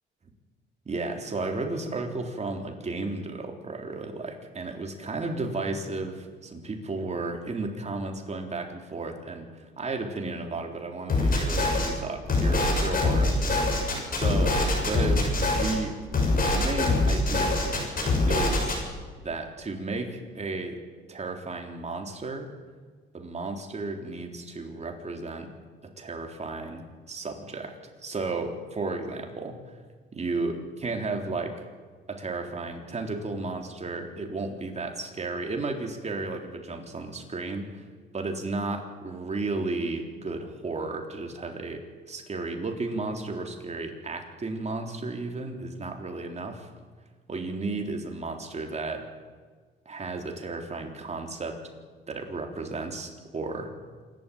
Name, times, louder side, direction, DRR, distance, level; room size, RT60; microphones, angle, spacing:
voice 1, 0.9-13.7 14.2-14.5 14.8-15.2 15.5-16.3 16.5-18.8 19.2-20.8 21.1-22.5 23.1-25.5 26.0-27.8 28.0-29.6 30.1-31.5 32.1-37.9 38.1-46.7 47.3-49.1 49.9-51.6 52.1-53.7, right 3 dB, 35° right, 3 dB, 3.8 m, -33 dB
sound 1, 11.1-11.9 12.3-15.7 16.1-18.8, left 2 dB, 45° left, 6.9 m, -24 dB
27.0 x 12.5 x 8.7 m, 1.5 s
cardioid pair, 90°, 20 cm